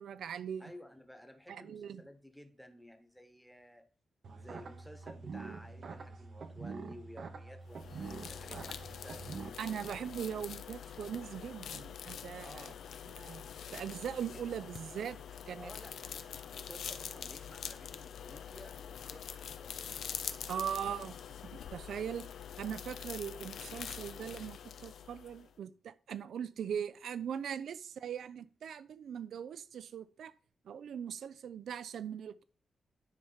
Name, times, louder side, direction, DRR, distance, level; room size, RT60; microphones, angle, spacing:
voice 1, 0.0-0.7 1.5-2.0 9.6-12.7 13.2-13.4 13.7-15.2 15.5-15.7 20.5-21.2 21.4-22.3 22.6-30.3 30.6-32.4, right 8 dB, 80° right, 0.5 m, -40 dB
voice 2, 0.6-3.8 4.3-9.5 12.4-12.8 14.3-14.4 15.6-20.0, left 1 dB, ahead, 1.1 m, -54 dB
sound 1, 4.2-9.5, right 4 dB, 50° right, 0.9 m, -45 dB
sound 2, 7.7-25.5, left 8 dB, 85° left, 0.6 m, -45 dB
10.0 x 3.4 x 5.6 m
wide cardioid pair, 155°, 0 cm